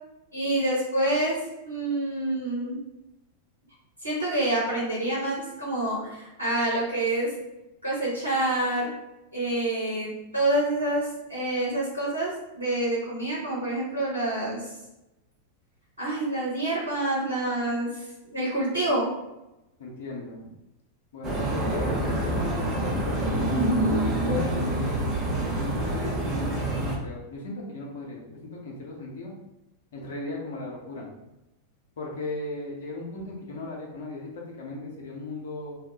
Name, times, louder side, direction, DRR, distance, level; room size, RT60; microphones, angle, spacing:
voice 1, 0.3-2.8 4.0-7.3 7.8-8.9 9.3-14.7 16.0-19.1, right 1 dB, 80° right, -6 dB, 0.7 m, -27 dB
voice 2, 19.8-20.4 21.1-23.6 24.0-25.0 25.3-29.3 29.9-31.1 32.0-35.8, left 2 dB, 60° left, -2 dB, 0.6 m, -36 dB
sound 1, 21.2-27.0, right 1 dB, 30° right, 0.6 m, -26 dB
2.3 x 2.0 x 2.8 m, 0.94 s
figure-of-eight pair, 90°, 0 cm